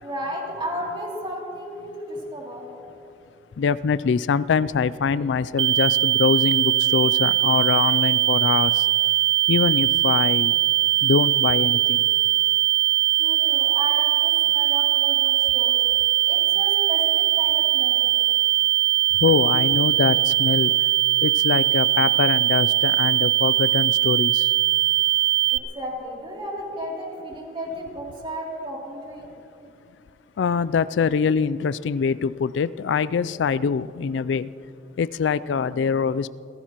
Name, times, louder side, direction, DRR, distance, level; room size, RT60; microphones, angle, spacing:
voice 1, 0.0-2.7 13.2-15.8 16.3-18.1 25.5-29.3, equal, 30° right, -2 dB, 2.8 m, -33 dB
voice 2, 3.6-8.9 9.5-10.5 11.0-12.0 19.2-20.7 21.2-24.5 30.4-34.5 35.0-36.3, left 6 dB, 80° left, 17 dB, 0.3 m, -23 dB
sound 1, 5.6-25.6, right 14 dB, 85° right, 0.5 m, -20 dB
29.5 x 15.5 x 3.0 m, 2.7 s
head